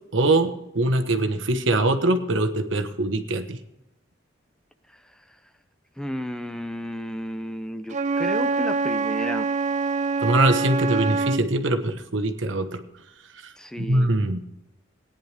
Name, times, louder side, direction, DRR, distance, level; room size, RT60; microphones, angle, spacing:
voice 1, 0.1-3.6 10.2-12.8 13.4-14.4, right 2 dB, 70° right, 7 dB, 1.3 m, -23 dB
voice 2, 6.0-9.6 13.6-14.1, equal, 5° left, 9 dB, 0.6 m, -33 dB
Wind instrument woodwind instrument, 7.9-11.5, right 4 dB, 40° right, 0.6 m, -25 dB
17.5 x 10.0 x 3.4 m, 0.87 s
head